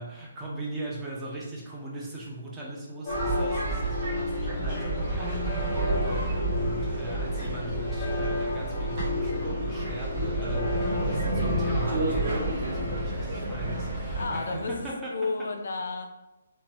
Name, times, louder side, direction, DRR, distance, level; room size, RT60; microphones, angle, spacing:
voice 1, 0.0-5.4 5.7-15.5, right 1 dB, 10° right, 0.6 m, -39 dB
sound 1, 3.0-13.0, left 3 dB, 30° left, 0.6 m, -35 dB
sound 2, 3.1-14.2, right 1 dB, 40° right, 1.1 m, -30 dB
sound 3, 9.7-14.9, right 1 dB, 80° right, 0.6 m, -36 dB
voice 2, 14.2-16.1, left 3 dB, 70° left, 0.3 m, -32 dB
2.9 x 2.2 x 2.8 m
hypercardioid pair, 155°, 0 cm